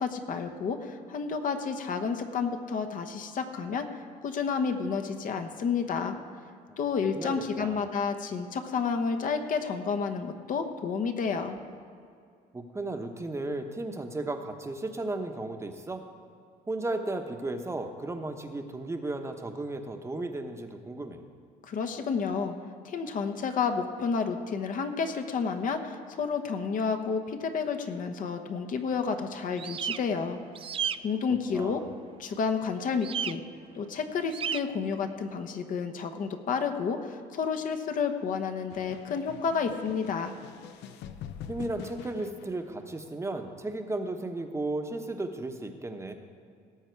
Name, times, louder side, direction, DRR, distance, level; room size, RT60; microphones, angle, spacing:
voice 1, 0.0-6.2 6.8-11.6 21.6-22.6 22.8-30.4 31.0-31.8 32.2-33.4 33.7-40.3, left 5 dB, 55° left, 6 dB, 1.1 m, -30 dB
voice 2, 7.2-7.8 12.5-16.0 16.7-21.2 31.5-31.9 41.5-46.1, right 2 dB, 15° right, 6 dB, 1.0 m, -35 dB
sound 1, 29.6-30.0 30.5-31.0 33.0-33.3 34.3-34.6, right 8 dB, 35° right, 0.3 m, -31 dB
sound 2, 38.7-43.0, left 8 dB, 85° left, 0.6 m, -44 dB
18.0 x 7.3 x 4.7 m, 2.3 s
cardioid pair, 110°, 17 cm